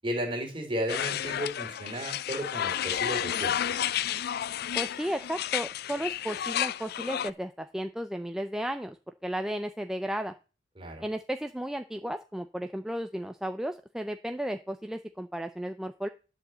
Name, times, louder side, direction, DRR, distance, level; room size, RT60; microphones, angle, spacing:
voice 1, 0.0-3.7 10.8-11.0, equal, 30° right, 2 dB, 3.0 m, -34 dB
sound 1, 0.9-7.3, left 10 dB, 60° left, 0.4 m, -31 dB
voice 2, 4.7-9.0 9.2-10.3 11.0-16.1, equal, 5° right, 7 dB, 0.5 m, -34 dB
11.0 x 4.8 x 7.6 m, 0.34 s
head